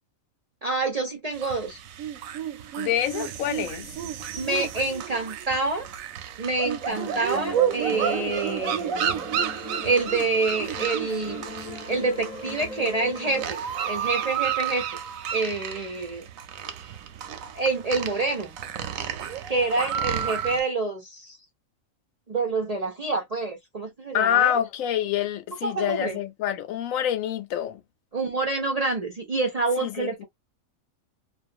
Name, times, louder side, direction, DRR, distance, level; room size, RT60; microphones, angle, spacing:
voice 1, 0.6-1.8 4.4-5.9 6.4-9.3 9.8-11.4 11.9-14.9 15.3-16.2 17.5-18.5 19.5-21.4 22.3-24.5 25.6-26.1 28.1-30.2, right 3 dB, 45° right, 0.5 m, -27 dB
sound 1, 1.3-20.6, right 9 dB, 85° right, 1.0 m, -31 dB
voice 2, 2.8-3.9 24.1-27.8 29.8-30.2, left 10 dB, 80° left, 1.0 m, -26 dB
sound 2, 6.9-13.5, left 2 dB, 35° left, 0.7 m, -40 dB
2.4 x 2.4 x 2.5 m
omnidirectional pair, 1.4 m